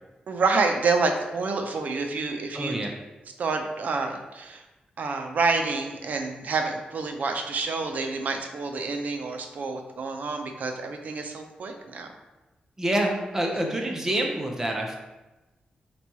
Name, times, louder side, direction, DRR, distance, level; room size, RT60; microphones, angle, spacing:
voice 1, 0.3-2.8 3.4-4.6 5.0-12.1, right 4 dB, 65° right, 5 dB, 0.4 m, -28 dB
voice 2, 2.5-2.9 12.8-15.0, right 1 dB, 15° right, 1 dB, 0.5 m, -27 dB
3.0 x 2.3 x 4.0 m, 1.1 s
wide cardioid pair, 115°, 3 cm